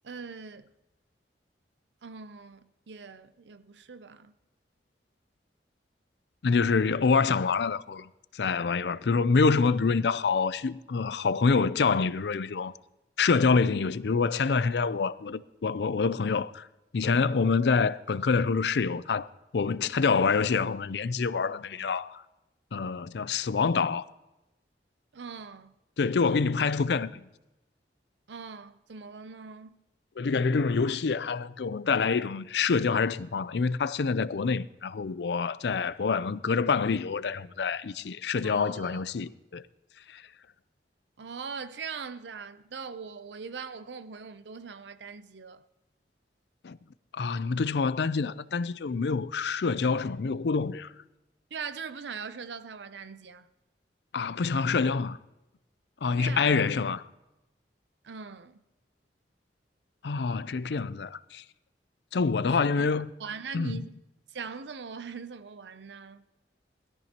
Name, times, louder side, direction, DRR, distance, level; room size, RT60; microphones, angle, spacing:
voice 1, 0.0-0.7 2.0-4.3 25.1-25.7 28.3-29.8 38.4-39.0 41.2-45.7 51.5-53.5 56.2-56.9 58.0-58.6 62.5-62.9 63.2-64.0 64.3-66.2, right 5 dB, 80° right, 0.6 m, -41 dB
voice 2, 6.4-8.1 8.3-12.7 13.2-16.6 16.9-19.3 19.5-22.2 22.7-24.0 26.0-27.2 30.2-39.6 40.1-40.2 46.6-46.8 47.2-50.9 54.1-55.2 56.0-57.0 60.0-61.4 62.1-63.1 63.5-63.8, left 5 dB, 70° left, 0.5 m, -26 dB
20.5 x 13.5 x 2.9 m
head